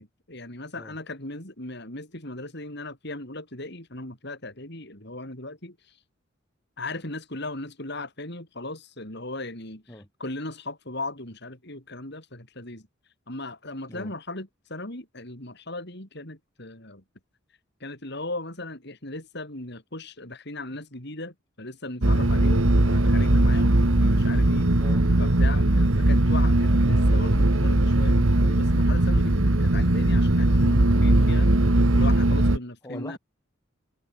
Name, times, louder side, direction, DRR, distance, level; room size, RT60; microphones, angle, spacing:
voice 1, 0.0-6.0 6.8-12.9 13.3-17.0 17.8-24.7 25.2-33.2, left 2 dB, 55° left, 6.7 m, -38 dB
sound 1, 22.0-32.6, right 1 dB, 85° right, 1.8 m, -20 dB
voice 2, 24.8-25.1 32.8-33.2, left 1 dB, 15° left, 7.1 m, -40 dB
head